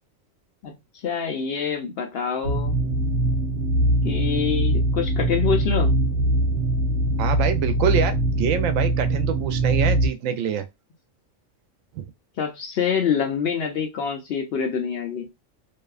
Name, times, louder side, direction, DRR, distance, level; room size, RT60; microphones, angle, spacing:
voice 1, 0.6-2.8 4.0-5.9 12.4-15.3, left 7 dB, 65° left, 0.6 m, -26 dB
sound 1, 2.4-10.1, right 1 dB, 60° right, 0.8 m, -22 dB
voice 2, 7.2-10.7 11.9-12.0, right 8 dB, 85° right, 1.0 m, -25 dB
2.7 x 2.2 x 2.3 m
omnidirectional pair, 1.3 m